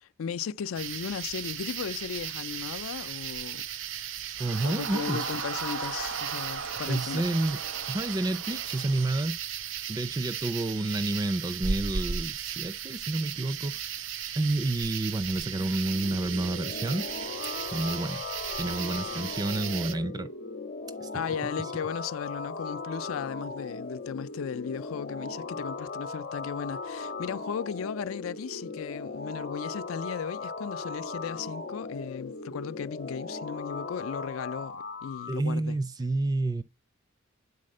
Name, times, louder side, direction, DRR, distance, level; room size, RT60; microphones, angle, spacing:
voice 1, 0.0-3.6 4.6-7.2 21.1-35.8, left 7 dB, 90° left, 0.4 m, -36 dB
sound 1, 0.7-19.9, right 8 dB, 70° right, 0.5 m, -36 dB
voice 2, 4.4-5.4 6.9-7.6 7.9-9.3 9.9-13.8 14.3-17.1 17.7-18.2 18.6-20.3 21.0-21.1 35.3-36.6, right 2 dB, 20° right, 0.4 m, -29 dB
Crowd, 4.4-9.2, right 4 dB, 85° right, 1.1 m, -38 dB
sound 2, 15.5-35.4, left 3 dB, 55° left, 0.8 m, -38 dB
8.5 x 4.1 x 6.5 m
head